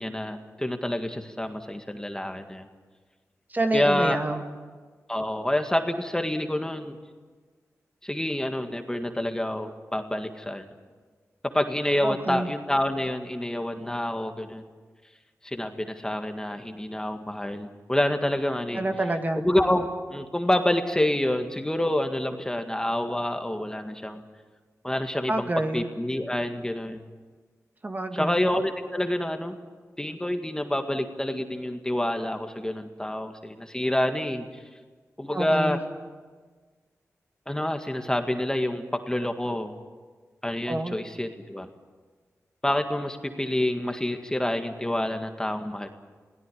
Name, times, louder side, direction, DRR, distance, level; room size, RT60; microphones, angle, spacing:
voice 1, 0.0-2.7 3.7-4.2 5.1-7.0 8.0-10.7 11.5-14.6 15.4-18.9 19.4-24.2 24.8-27.0 28.1-29.6 30.0-34.5 35.2-35.8 37.5-39.7 40.4-41.7 42.6-45.9, left 1 dB, 10° left, 6 dB, 1.9 m, -27 dB
voice 2, 3.5-4.6 12.0-12.5 18.7-19.5 25.3-25.9 27.8-28.4 35.3-35.8 40.7-41.0, right 2 dB, 30° right, 5 dB, 2.0 m, -28 dB
21.5 x 17.0 x 10.0 m, 1.4 s
wide cardioid pair, 75°, 6 cm